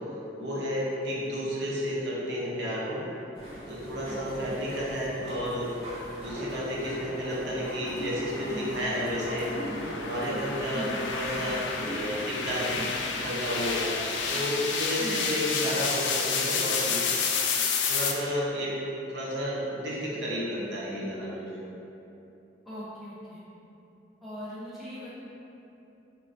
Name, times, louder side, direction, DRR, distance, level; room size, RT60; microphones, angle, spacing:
voice 1, 0.4-3.0 3.7-5.7 6.2-9.5 10.0-13.8 14.3-17.0 17.9-18.7 19.1-21.6, equal, 70° right, -6 dB, 0.7 m, -32 dB
sound 1, 3.3-14.3, equal, 35° right, 0.8 m, -40 dB
voice 2, 4.1-4.6 10.7-11.0 15.0-15.4 22.7-23.4 24.2-25.1, equal, ahead, -11 dB, 0.5 m, -40 dB
sound 2, 6.1-18.1, left 5 dB, 75° left, 0.3 m, -31 dB
4.1 x 2.2 x 2.5 m, 2.9 s
head